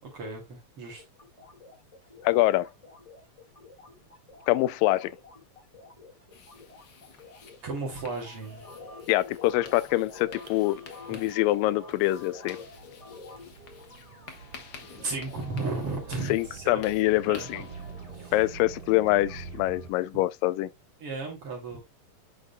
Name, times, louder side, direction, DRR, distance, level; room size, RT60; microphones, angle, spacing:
voice 1, 0.0-1.0 7.6-8.6 15.0-16.8 17.2-17.7 18.2-18.3 21.0-21.8, right 3 dB, 45° right, 3.2 m, -35 dB
sound 1, 1.0-20.0, left 3 dB, 20° left, 0.9 m, -49 dB
voice 2, 2.2-2.7 4.5-5.1 9.1-10.8 11.1-12.6 16.3-17.6 18.3-20.7, left 17 dB, 90° left, 2.2 m, -25 dB
sound 2, 6.3-18.9, left 6 dB, 65° left, 1.1 m, -51 dB
sound 3, 8.1-8.7 10.5-19.9, right 5 dB, 65° right, 1.8 m, -46 dB
9.6 x 5.1 x 2.2 m
omnidirectional pair, 3.8 m